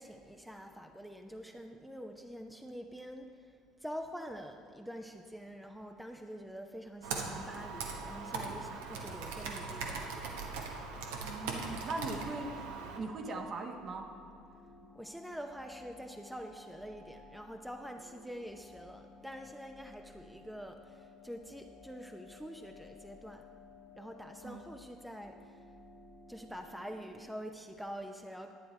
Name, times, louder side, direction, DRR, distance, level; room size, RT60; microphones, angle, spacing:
voice 1, 0.0-10.0 14.9-23.5 23.9-25.7 26.3-28.5, equal, ahead, 4 dB, 0.7 m, -46 dB
Computer keyboard, 7.0-13.0, right 4 dB, 75° right, 1.0 m, -40 dB
voice 2, 11.2-12.7 12.9-14.1 24.4-24.6, right 3 dB, 45° right, 3 dB, 1.3 m, -40 dB
sound 1, 11.4-27.3, left 3 dB, 25° left, 1.5 m, -56 dB
11.0 x 9.2 x 4.4 m, 2.5 s
hypercardioid pair, 60°, 0 cm